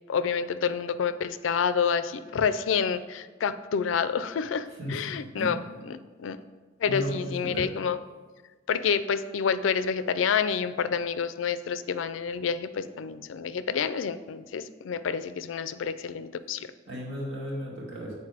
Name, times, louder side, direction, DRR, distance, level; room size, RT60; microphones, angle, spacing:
voice 1, 0.1-5.6 5.9-6.4 6.8-8.0 8.7-16.7, left 6 dB, 85° left, 13 dB, 0.4 m, -28 dB
voice 2, 4.8-5.6 6.9-7.7 16.9-18.1, equal, 65° right, -5 dB, 2.1 m, -35 dB
8.6 x 4.2 x 4.9 m, 1.3 s
head